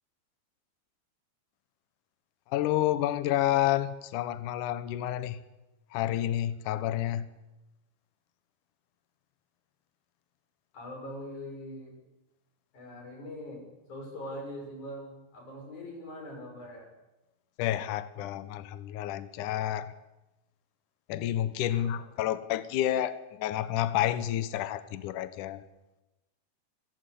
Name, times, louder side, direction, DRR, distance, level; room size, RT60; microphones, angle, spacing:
voice 1, 2.5-5.4 5.9-7.3 17.6-19.9 21.1-25.6, left 13 dB, 85° left, 14 dB, 1.8 m, -29 dB
voice 2, 10.7-11.9 12.7-16.9 21.7-22.0, left 1 dB, 45° left, 2 dB, 7.4 m, -42 dB
26.0 x 17.0 x 8.5 m, 0.99 s
omnidirectional pair, 5.1 m